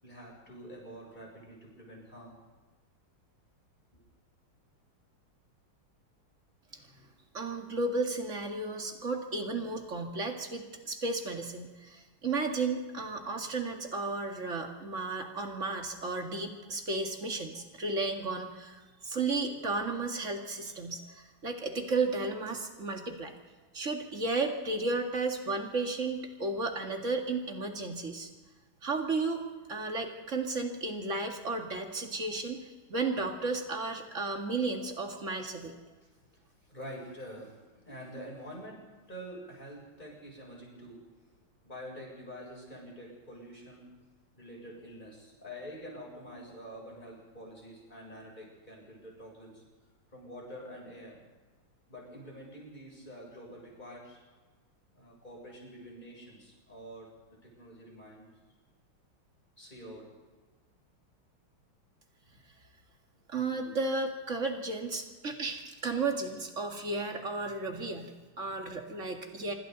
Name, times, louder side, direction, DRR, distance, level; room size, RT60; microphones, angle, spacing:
voice 1, 0.0-2.4 3.9-4.0 36.0-41.3 41.6-43.9 44.4-49.6 50.1-51.2 51.9-54.2 54.9-58.3 59.6-60.1, equal, 20° left, -2 dB, 7.5 m, -47 dB
voice 2, 7.3-23.3 23.7-28.3 28.8-35.7 63.3-69.5, right 3 dB, 35° right, 3 dB, 2.3 m, -33 dB
26.5 x 25.0 x 4.1 m, 1.3 s
omnidirectional pair, 2.3 m